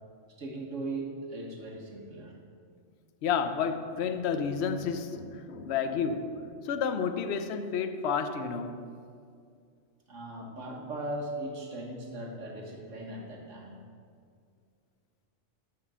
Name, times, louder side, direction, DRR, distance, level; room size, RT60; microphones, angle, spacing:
voice 1, 0.4-2.4 10.1-13.8, right 2 dB, 85° right, 0 dB, 1.9 m, -38 dB
voice 2, 3.2-8.8, left 6 dB, 65° left, 8 dB, 0.9 m, -31 dB
13.0 x 5.0 x 6.8 m, 2.3 s
omnidirectional pair, 1.3 m